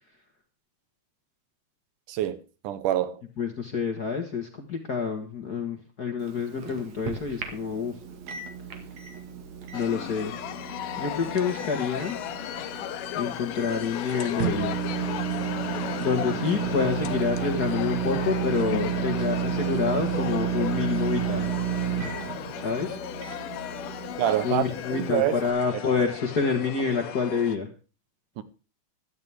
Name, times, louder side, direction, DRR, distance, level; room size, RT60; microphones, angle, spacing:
voice 1, 2.1-3.2 24.2-24.6 24.9-25.4 28.4-28.5, right 12 dB, 80° right, 2.5 m, -26 dB
voice 2, 3.4-7.9 9.7-10.3 11.0-12.2 13.1-14.8 15.7-21.5 22.6-23.0 24.4-27.7, left 5 dB, 45° left, 1.4 m, -28 dB
Microwave oven, 6.2-25.5, right 8 dB, 60° right, 3.0 m, -32 dB
sound 1, 9.7-27.6, left 11 dB, 90° left, 2.5 m, -36 dB
16.0 x 12.5 x 3.5 m
omnidirectional pair, 3.7 m